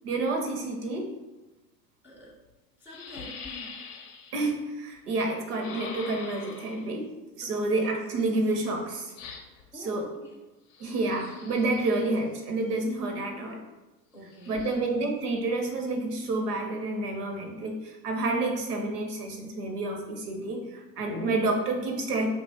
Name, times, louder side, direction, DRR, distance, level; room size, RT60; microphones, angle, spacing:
voice 1, 0.0-1.1 4.3-7.1 7.4-9.1 9.7-10.1 10.8-13.6 14.5-22.3, right 2 dB, 65° right, 2 dB, 0.9 m, -29 dB
voice 2, 2.0-2.3 2.8-3.7 7.4-7.6 9.7-10.3 14.1-14.8, left 1 dB, 5° right, -6 dB, 0.6 m, -45 dB
sound 1, 2.2-2.3 2.9-4.5 5.6-7.0 9.2-9.7 10.7-12.1 14.3-14.7, left 5 dB, 45° left, 0.6 m, -44 dB
2.8 x 2.4 x 4.1 m, 1.1 s
figure-of-eight pair, 80°, 49 cm